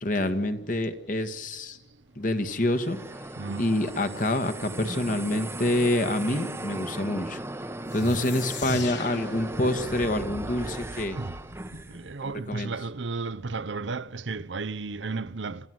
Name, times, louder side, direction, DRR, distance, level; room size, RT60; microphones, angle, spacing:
voice 1, 0.0-1.8 2.1-3.0 3.6-7.4 7.9-11.2 12.2-12.7, left 1 dB, 45° left, 1.6 m, -27 dB
sound 1, 2.4-12.1, right 1 dB, 15° right, 0.9 m, -37 dB
voice 2, 3.4-3.7 8.0-8.2 8.7-8.8 11.2-11.3 11.7-15.7, right 3 dB, 80° right, 0.8 m, -33 dB
sound 2, 7.9-12.5, left 4 dB, 75° left, 2.9 m, -41 dB
28.0 x 16.0 x 7.8 m
head